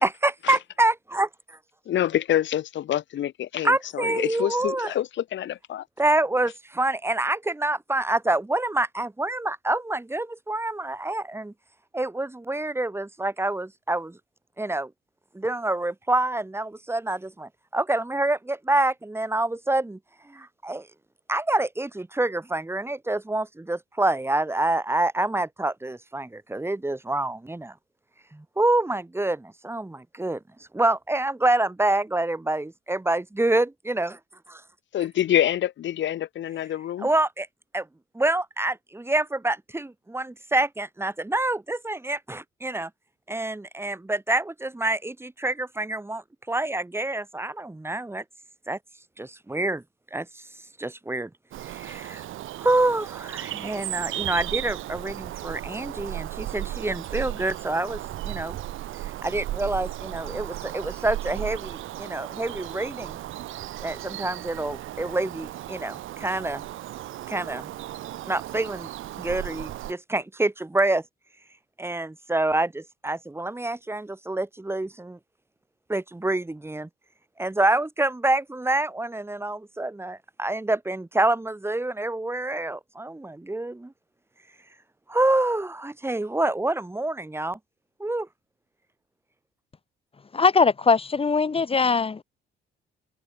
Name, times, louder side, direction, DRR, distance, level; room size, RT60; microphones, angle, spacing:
voice 1, 0.0-1.6 3.6-4.9 6.0-11.5 11.9-14.2 14.6-14.9 15.3-20.0 20.3-20.9 21.3-27.7 28.3-30.4 30.7-34.2 34.5-34.6 37.0-37.5 37.7-37.9 38.1-42.9 43.3-48.2 48.7-48.8 49.2-49.8 50.1-50.4 50.8-51.3 51.6-52.3 52.6-58.6 59.2-63.2 63.8-66.6 67.3-67.7 68.3-68.9 69.2-71.0 71.8-75.2 75.9-76.9 77.4-83.9 85.1-87.6 88.0-88.3, right 2 dB, 10° right, 3.6 m, -27 dB
voice 2, 1.9-5.9 34.9-37.1, left 11 dB, 70° left, 1.8 m, -26 dB
Bird vocalization bird call bird song, 51.5-69.9, right 14 dB, 85° right, 7.9 m, -35 dB
voice 3, 90.3-92.2, left 4 dB, 30° left, 1.4 m, -21 dB
cardioid pair, 90°, 20 cm